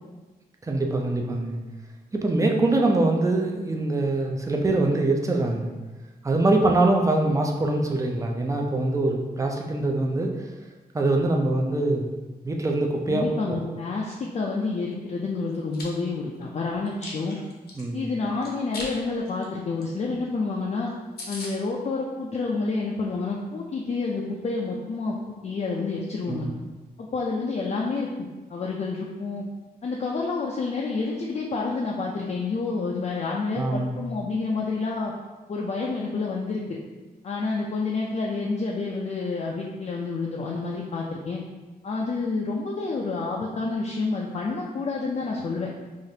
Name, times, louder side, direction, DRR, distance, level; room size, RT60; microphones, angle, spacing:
voice 1, 0.6-1.6 2.1-5.7 6.2-10.3 10.9-12.1 12.4-13.7 17.8-18.1 26.3-26.5 33.6-34.0, right 2 dB, 20° right, 1 dB, 0.4 m, -23 dB
voice 2, 13.1-17.4 17.9-20.9 21.3-26.5 27.0-29.5 29.8-35.1 35.5-36.8 37.2-41.4 41.8-45.7, left 3 dB, 45° left, -2 dB, 0.4 m, -29 dB
Chewing mastication, 15.5-15.8 16.3-17.8 18.4-18.9 19.2-19.4 19.8-19.9 20.1-20.2 20.6-20.7 20.9-21.0 21.2-21.5, left 2 dB, 85° left, 0.8 m, -38 dB
4.9 x 2.5 x 2.7 m, 1.2 s
wide cardioid pair, 140°, 16 cm